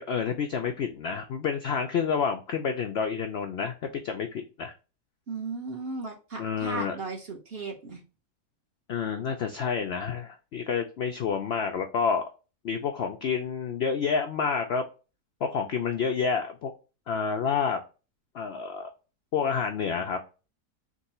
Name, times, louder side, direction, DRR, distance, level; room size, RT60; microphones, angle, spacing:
voice 1, 0.0-4.7 6.4-7.0 8.9-12.2 12.6-14.8 15.4-16.7 17.1-17.8 18.3-18.9 19.3-20.2, left 6 dB, 75° left, 5 dB, 0.6 m, -29 dB
voice 2, 5.3-8.0, right 3 dB, 45° right, 1 dB, 1.1 m, -36 dB
3.6 x 3.0 x 4.2 m, 0.32 s
omnidirectional pair, 1.7 m